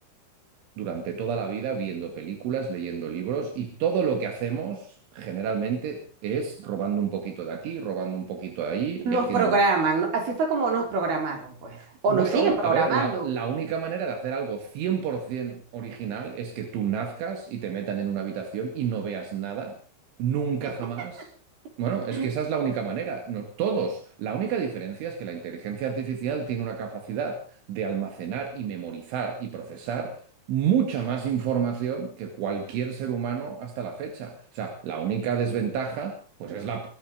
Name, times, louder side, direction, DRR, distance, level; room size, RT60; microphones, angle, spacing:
voice 1, 0.8-9.6 12.1-19.8 20.2-21.3 21.8-27.4 27.7-30.2 30.5-36.9, right 7 dB, 80° right, 4.6 m, -29 dB
voice 2, 9.0-13.3 22.2-22.3, right 4 dB, 55° right, 6.4 m, -24 dB
22.5 x 12.5 x 5.0 m
omnidirectional pair, 5.4 m